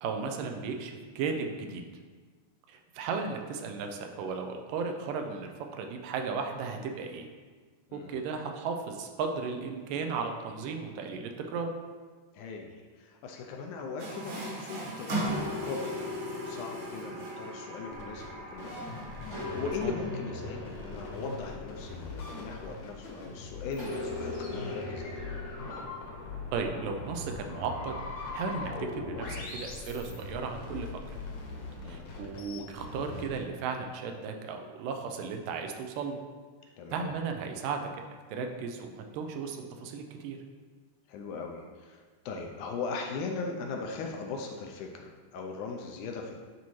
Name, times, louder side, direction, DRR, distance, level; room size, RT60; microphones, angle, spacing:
voice 1, 0.0-1.8 2.7-7.3 7.9-11.7 19.8-19.9 26.5-31.2 31.9-36.2 36.9-37.9 38.3-40.4, right 5 dB, 85° right, 4 dB, 2.2 m, -35 dB
voice 2, 12.3-25.3 31.8-32.1 36.8-37.1 41.1-46.4, left 4 dB, 80° left, 2 dB, 2.0 m, -39 dB
Water tap faucet, 14.0-20.3, right 2 dB, 55° right, 1.7 m, -39 dB
sound 1, 15.2-18.8 19.3-23.0 23.8-26.4, left 3 dB, 25° right, 0.9 m, -40 dB
sound 2, 17.9-33.4, left 3 dB, 60° left, 1.8 m, -41 dB
10.5 x 4.1 x 3.1 m, 1.5 s
omnidirectional pair, 3.8 m